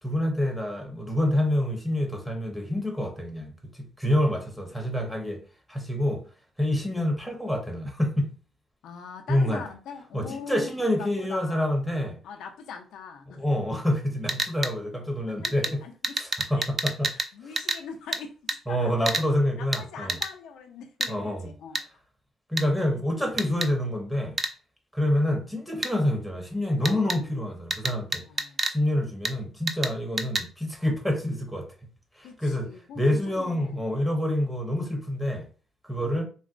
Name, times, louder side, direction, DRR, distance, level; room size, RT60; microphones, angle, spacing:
voice 1, 0.0-5.4 5.7-6.2 6.6-8.3 9.3-9.6 10.1-12.2 13.4-15.8 16.2-17.1 18.7-20.2 21.1-21.5 22.5-24.4 24.9-28.2 28.7-31.7 32.2-32.7 33.0-35.4 35.8-36.2, left 1 dB, ahead, 0.7 m, -27 dB
voice 2, 8.8-10.7 11.0-11.9 12.2-13.4 15.3-16.2 16.6-16.7 17.1-19.2 19.6-21.8 26.8-27.3 28.2-28.6 32.2-33.9 34.2-34.4 35.9-36.2, left 6 dB, 80° left, 0.4 m, -42 dB
sound 1, 14.3-14.7 15.4-15.7 16.0-17.3 17.6-17.8 18.1-18.2 18.5-18.6 19.1-19.3 19.7-19.8 20.1-20.3 21.0-21.1 21.7-21.8 22.6-22.7 23.4-23.7 24.4-24.5 25.8-25.9 26.8-27.2 27.7-28.8 29.2-29.3 29.7-29.9 30.2-30.5, right 3 dB, 35° right, 0.4 m, -28 dB
3.8 x 2.1 x 2.5 m
cardioid pair, 90°, 0 cm